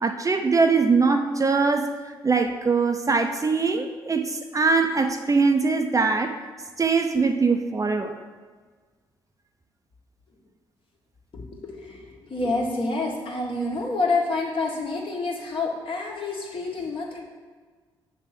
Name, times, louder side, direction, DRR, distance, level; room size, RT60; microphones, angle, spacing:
voice 1, 0.0-1.9 2.2-6.4 6.8-8.2, right 4 dB, 30° right, 6 dB, 0.6 m, -22 dB
voice 2, 11.3-17.2, left 3 dB, 50° left, -2 dB, 1.6 m, -28 dB
7.3 x 3.5 x 5.9 m, 1.5 s
hypercardioid pair, 40°, 12 cm